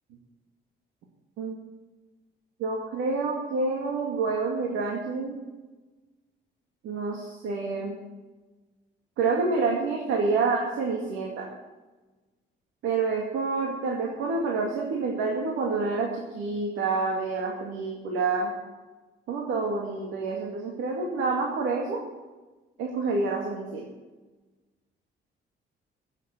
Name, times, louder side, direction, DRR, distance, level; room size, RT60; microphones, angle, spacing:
voice 1, 2.6-5.4 6.8-8.0 9.2-11.5 12.8-18.5 19.3-22.0 22.8-23.9, right 4 dB, 90° right, -1 dB, 2.2 m, -28 dB
15.0 x 7.6 x 8.8 m, 1.2 s
cardioid pair, 90°, 20 cm